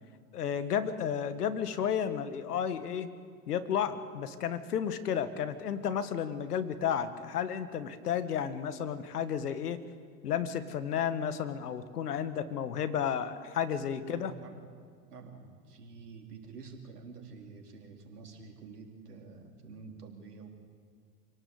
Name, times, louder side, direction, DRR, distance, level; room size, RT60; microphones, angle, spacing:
voice 1, 0.3-3.1 3.5-9.8 10.2-14.3, left 8 dB, 85° left, 12 dB, 1.7 m, -32 dB
voice 2, 14.0-14.6 15.1-20.5, right 4 dB, 85° right, 2 dB, 3.8 m, -48 dB
26.5 x 17.5 x 8.3 m, 2.1 s
hypercardioid pair, 90°, 45 cm